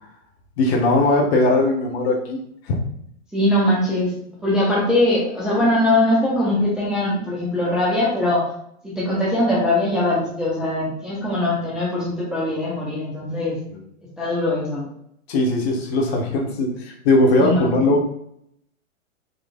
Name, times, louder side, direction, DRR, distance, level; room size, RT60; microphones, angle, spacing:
voice 1, 0.6-2.4 2.6-2.8 13.7-13.8 15.3-18.1, left 2 dB, 50° left, 0 dB, 1.2 m, -19 dB
voice 2, 3.3-4.1 4.4-8.4 8.8-13.5 14.2-14.8 17.4-17.8, left 1 dB, ahead, -7 dB, 0.4 m, -21 dB
4.0 x 3.1 x 2.4 m, 0.70 s
figure-of-eight pair, 110°, 40 cm